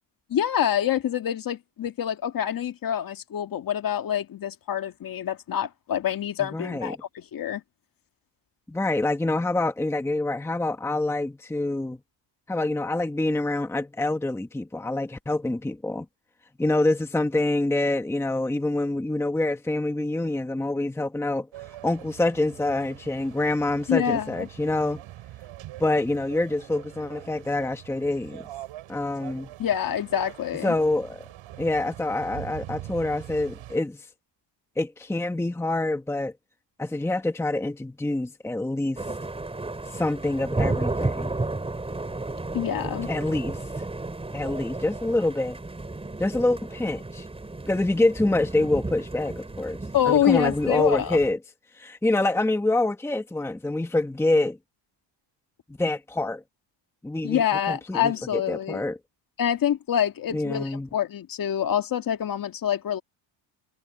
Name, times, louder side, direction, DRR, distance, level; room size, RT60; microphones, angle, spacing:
voice 1, 0.3-7.6 23.9-24.5 29.6-30.8 42.5-43.1 49.9-51.2 57.2-58.8 59.4-63.0, left 10 dB, 45° left, 2.1 m, -26 dB
voice 2, 6.4-7.0 8.7-12.0 12.5-16.0 16.6-21.5 21.8-25.0 25.8-28.5 28.9-29.5 30.6-31.2 31.6-34.0 34.8-36.3 36.8-39.0 39.9-41.3 43.1-43.6 44.3-45.6 46.2-47.3 47.7-49.8 50.0-51.4 51.7-54.6 55.8-56.4 57.0-57.4 57.7-59.0 60.3-60.9, left 2 dB, 5° left, 1.2 m, -26 dB
sound 1, 21.5-33.8, right 15 dB, 70° right, 6.7 m, -43 dB
sound 2, 39.0-51.3, right 2 dB, 10° right, 4.4 m, -33 dB
cardioid pair, 140°, 49 cm